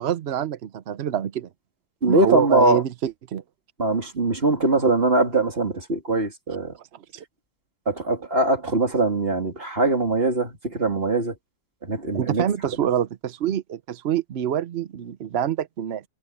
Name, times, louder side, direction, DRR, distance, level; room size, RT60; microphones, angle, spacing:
voice 1, 0.0-1.5 2.0-3.4 7.1-7.2 12.1-16.0, right 10 dB, 65° right, 0.6 m, -26 dB
voice 2, 2.0-2.8 3.8-6.7 7.9-11.3 11.8-12.4, right 2 dB, 30° right, 3.2 m, -22 dB
omnidirectional pair, 1.9 m